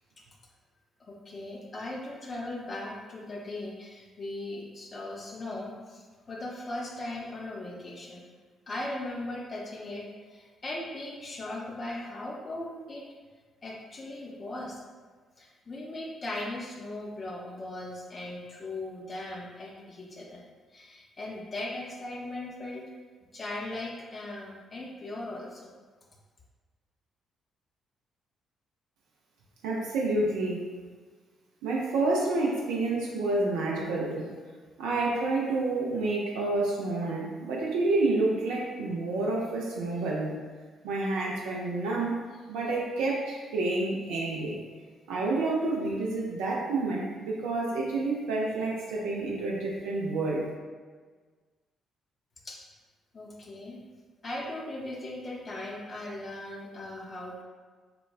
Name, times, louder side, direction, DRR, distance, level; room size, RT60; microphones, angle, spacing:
voice 1, 1.0-8.2 8.7-13.0 13.6-14.8 15.4-20.4 20.7-22.9 23.3-25.7 52.4-52.6 53.1-53.8 54.2-57.4, left 2 dB, 40° left, -2 dB, 0.5 m, -38 dB
voice 2, 29.6-30.6 31.6-34.3 34.8-40.4 40.8-42.2 42.5-44.6 45.1-50.5, right 2 dB, 70° right, -3 dB, 0.3 m, -29 dB
3.0 x 2.1 x 2.3 m, 1.5 s
figure-of-eight pair, 45°, 0 cm